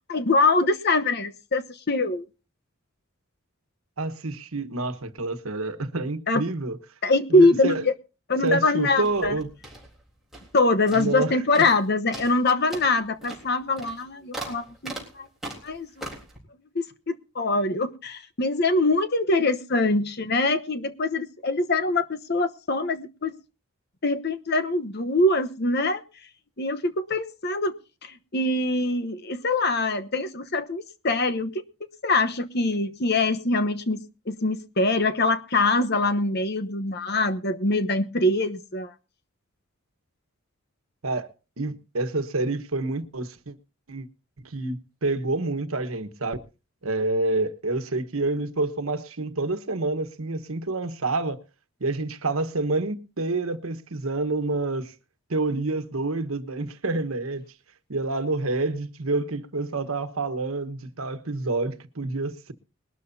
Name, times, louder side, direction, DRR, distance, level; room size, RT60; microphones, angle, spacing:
voice 1, 0.1-2.2 6.3-6.4 7.0-7.9 8.3-9.4 10.5-15.3 15.6-16.1 16.7-23.3 24.0-26.0 26.6-27.8 28.0-31.6 32.0-38.9, left 2 dB, 50° left, 1.0 m, -24 dB
voice 2, 4.0-6.8 7.3-7.8 8.4-9.5 10.9-11.7 41.0-41.3 41.6-43.5 43.9-44.1 44.4-46.4 46.8-51.4 51.8-54.9 55.3-57.4 57.9-62.5, right 2 dB, 85° right, 1.3 m, -28 dB
sound 1, 9.0-10.6 10.9-11.3 11.5-11.8 12.1-16.4, right 1 dB, ahead, 3.7 m, -40 dB
21.0 x 12.5 x 2.7 m
head